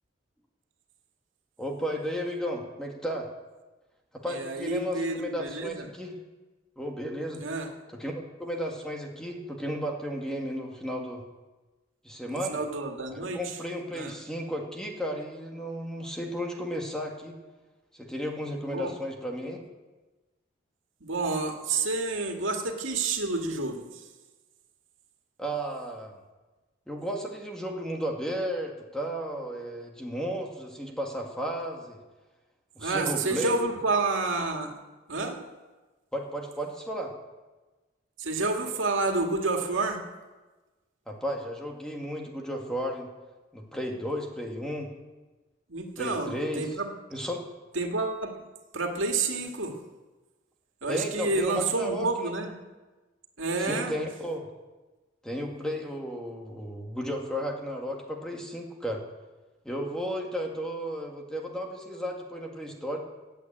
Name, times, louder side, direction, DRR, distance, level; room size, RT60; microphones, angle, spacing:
voice 1, 1.6-3.3 4.1-6.2 6.8-7.4 7.9-8.1 8.4-11.2 12.0-12.6 13.1-17.4 17.9-19.6 25.4-26.1 26.9-32.0 32.8-33.6 36.1-37.1 41.1-43.1 43.5-44.9 46.0-46.7 47.1-47.4 50.9-52.3 53.6-54.5 55.2-59.0 59.7-63.0, equal, 5° left, 1 dB, 1.9 m, -34 dB
voice 2, 4.3-5.9 7.4-7.7 12.3-13.4 13.9-14.1 18.7-18.9 21.0-23.9 32.8-34.7 35.1-35.4 38.2-40.0 45.7-46.9 47.7-48.4 48.7-49.8 50.8-52.5 53.4-54.0, right 3 dB, 90° right, 3 dB, 2.1 m, -29 dB
15.5 x 8.5 x 8.7 m, 1.2 s
head